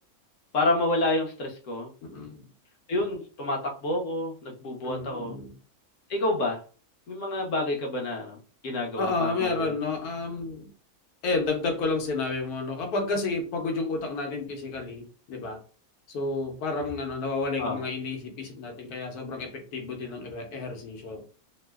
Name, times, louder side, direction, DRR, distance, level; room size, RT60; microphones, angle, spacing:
voice 1, 0.5-1.9 2.9-5.3 6.1-6.6 7.1-8.4 8.6-9.6 17.6-17.8, left 2 dB, 60° left, 1 dB, 1.1 m, -28 dB
voice 2, 2.0-2.4 4.8-5.5 9.0-10.7 11.2-15.6 16.1-21.2, left 3 dB, 85° left, 3 dB, 1.3 m, -31 dB
2.9 x 2.0 x 3.3 m, 0.37 s
omnidirectional pair, 1.6 m